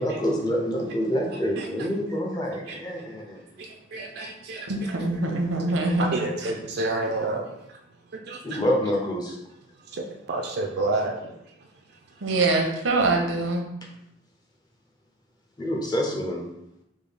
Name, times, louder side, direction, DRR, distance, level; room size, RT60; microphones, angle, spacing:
voice 1, 0.0-3.4 8.4-9.4 15.6-16.5, equal, 20° left, 0 dB, 0.5 m, -27 dB
voice 2, 3.6-4.7 6.1-7.5 8.1-8.6 9.9-11.2, right 2 dB, 55° right, 1 dB, 0.3 m, -29 dB
voice 3, 4.7-6.5 12.2-13.6, right 2 dB, 85° right, 2 dB, 0.7 m, -24 dB
3.6 x 2.3 x 3.3 m, 0.82 s
head